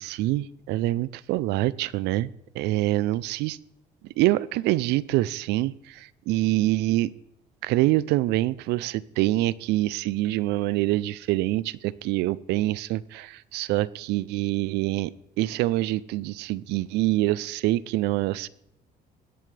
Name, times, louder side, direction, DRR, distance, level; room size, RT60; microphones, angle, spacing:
voice 1, 0.0-2.3 2.5-3.6 4.2-7.1 7.6-15.1 15.4-18.5, right 17 dB, 90° right, 20 dB, 0.5 m, -25 dB
19.0 x 7.8 x 3.3 m, 0.79 s
cardioid pair, 110°, 17 cm